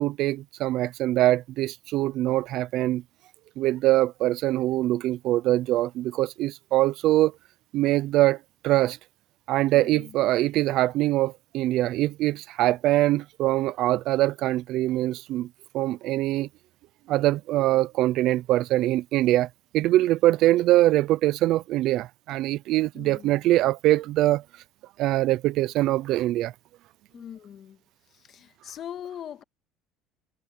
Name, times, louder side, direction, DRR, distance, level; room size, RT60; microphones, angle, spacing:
voice 1, 0.0-3.0 3.6-7.3 7.7-8.4 8.6-9.0 9.5-15.5 15.7-16.5 17.1-19.5 19.7-24.4 25.0-26.5, right 16 dB, 55° right, 0.4 m, -23 dB
voice 2, 9.7-10.2 22.9-23.4 27.1-27.8 28.1-29.4, left 9 dB, 40° left, 1.7 m, -41 dB
cardioid pair, 155°, 0 cm